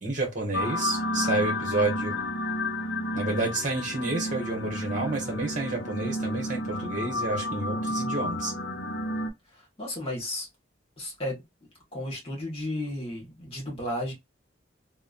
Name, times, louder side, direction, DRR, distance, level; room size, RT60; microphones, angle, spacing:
voice 1, 0.0-2.3 3.1-8.5, right 2 dB, 40° right, 1.1 m, -30 dB
sound 1, 0.5-9.3, left 1 dB, 80° left, 0.7 m, -31 dB
voice 2, 9.8-10.5 11.0-11.4 11.9-14.1, left 1 dB, 30° left, 1.5 m, -33 dB
3.0 x 2.2 x 2.4 m
head